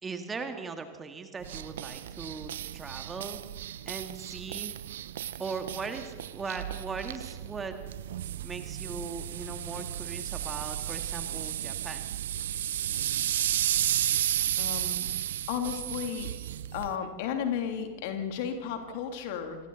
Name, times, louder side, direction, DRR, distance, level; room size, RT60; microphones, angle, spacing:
voice 1, 0.0-3.4 3.9-4.7 5.4-7.8 8.4-12.0, right 4 dB, 15° right, 7 dB, 2.0 m, -39 dB
sound 1, 1.4-17.0, right 11 dB, 60° right, 0.8 m, -33 dB
voice 2, 14.6-15.0 15.5-16.3 16.7-19.6, left 8 dB, 50° left, 5 dB, 2.8 m, -33 dB
26.5 x 26.0 x 4.0 m, 1.4 s
figure-of-eight pair, 90°, 0 cm